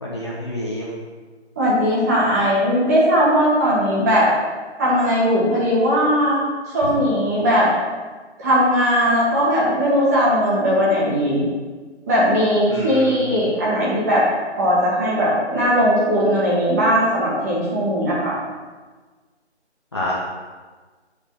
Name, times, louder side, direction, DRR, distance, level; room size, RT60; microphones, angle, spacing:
voice 1, 0.0-0.9 12.7-13.3 19.9-20.1, left 1 dB, 25° left, -5 dB, 0.9 m, -28 dB
voice 2, 1.5-4.3 4.8-6.4 6.7-7.7 8.4-11.4 12.1-14.2 14.6-18.4, equal, 15° right, -8 dB, 1.7 m, -18 dB
10.0 x 4.4 x 5.9 m, 1.4 s
figure-of-eight pair, 165°, 34 cm